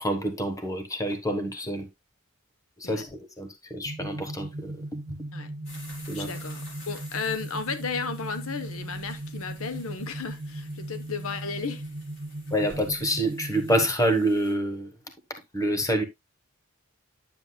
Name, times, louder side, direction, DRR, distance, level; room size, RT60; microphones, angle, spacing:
voice 1, 0.0-1.9 2.8-4.8 6.1-6.3 12.5-14.9 15.3-16.0, right 1 dB, 15° left, 1.3 m, -27 dB
sound 1, 3.9-13.9, right 1 dB, 35° right, 0.9 m, -38 dB
sound 2, 5.7-14.5, left 2 dB, 60° left, 3.7 m, -50 dB
voice 2, 6.1-11.8, left 5 dB, 85° left, 1.0 m, -34 dB
9.6 x 7.6 x 2.3 m
head